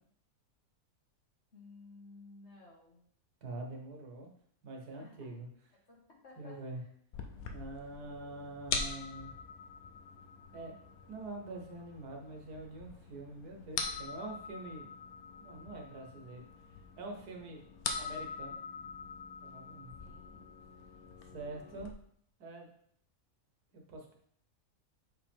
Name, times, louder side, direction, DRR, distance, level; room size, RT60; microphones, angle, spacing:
voice 1, 1.5-3.0 4.9-5.3 5.7-6.9 7.3-7.6 20.0-20.5, left 3 dB, 45° left, -2 dB, 1.8 m, -56 dB
voice 2, 3.4-4.3 4.6-5.5 6.4-6.8 7.5-9.3 10.5-10.7 11.1-14.9 15.4-16.4 17.0-17.6 18.0-18.9 19.4-20.2 21.3-21.9 22.4-22.7 23.7-24.1, right 2 dB, 80° right, 1 dB, 1.7 m, -45 dB
sound 1, 7.1-21.9, left 5 dB, 70° left, 1.2 m, -43 dB
6.4 x 5.0 x 3.6 m, 0.64 s
omnidirectional pair, 1.6 m